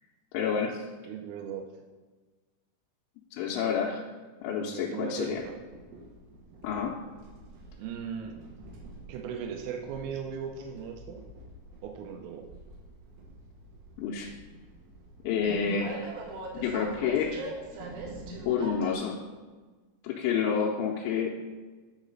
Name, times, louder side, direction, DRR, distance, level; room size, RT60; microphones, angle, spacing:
voice 1, 0.3-0.8 3.3-4.1 4.4-5.4 6.6-6.9 14.0-14.3 15.2-16.1 16.5-17.4 18.5-19.2 20.0-21.4, left 7 dB, 80° left, -3 dB, 2.9 m, -29 dB
voice 2, 1.0-1.7 4.6-5.6 7.8-8.4 9.1-11.2 11.8-12.4, right 7 dB, 90° right, 3 dB, 3.2 m, -38 dB
Train, 5.3-19.0, right 2 dB, 70° right, 3.0 m, -44 dB
10.5 x 4.1 x 5.3 m, 1.3 s
omnidirectional pair, 5.8 m